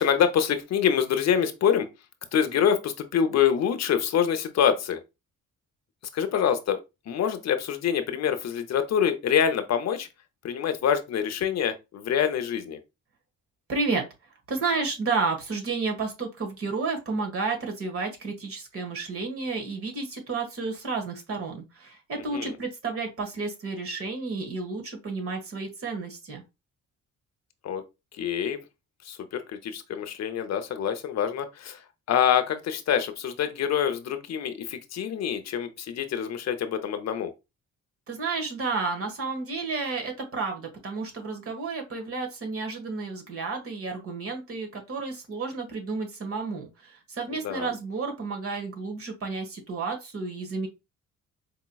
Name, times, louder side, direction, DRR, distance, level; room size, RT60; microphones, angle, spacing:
voice 1, 0.0-1.9 2.3-5.0 6.1-10.1 10.4-12.8 22.1-22.6 27.6-27.8 28.2-28.6 29.0-37.3 47.3-47.7, left 8 dB, 60° left, 0.7 m, -26 dB
voice 2, 13.7-14.1 14.5-26.4 38.1-50.7, right 4 dB, 50° right, 1.5 m, -31 dB
4.6 x 2.9 x 2.3 m
cardioid pair, 90°, 30 cm